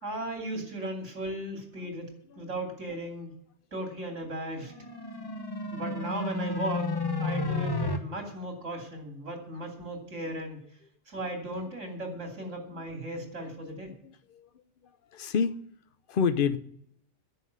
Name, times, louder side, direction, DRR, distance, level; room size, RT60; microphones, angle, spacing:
voice 1, 0.0-3.4 3.7-4.7 5.7-6.9 7.2-10.6 11.1-13.9, right 1 dB, 90° right, 3.1 m, -36 dB
sound 1, 4.6-8.0, left 2 dB, 20° left, 1.1 m, -31 dB
voice 2, 15.1-15.6 16.1-16.6, left 6 dB, 50° left, 0.8 m, -26 dB
10.0 x 7.0 x 9.3 m
omnidirectional pair, 1.2 m